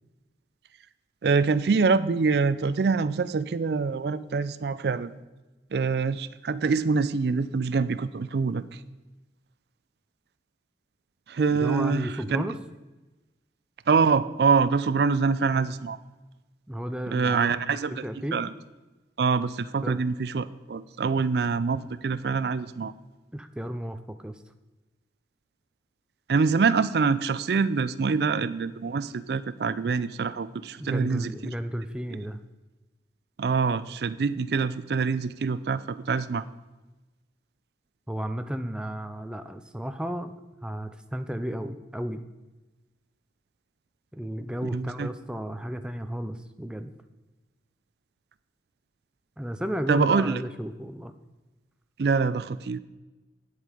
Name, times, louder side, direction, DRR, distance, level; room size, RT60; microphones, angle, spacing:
voice 1, 1.2-5.1 5.7-8.8 11.3-12.4 13.9-16.0 17.1-18.0 18.3-18.5 19.2-22.9 26.3-31.3 33.4-36.4 44.6-45.1 49.9-50.4 52.0-52.8, right 5 dB, 60° right, 15 dB, 0.4 m, -25 dB
voice 2, 11.5-12.6 16.7-17.5 17.9-18.4 19.8-20.0 21.2-21.3 23.3-24.4 30.8-32.4 38.1-42.2 44.1-46.9 49.4-51.1, equal, 5° right, 8 dB, 0.4 m, -33 dB
9.4 x 8.1 x 5.0 m, 1.1 s
head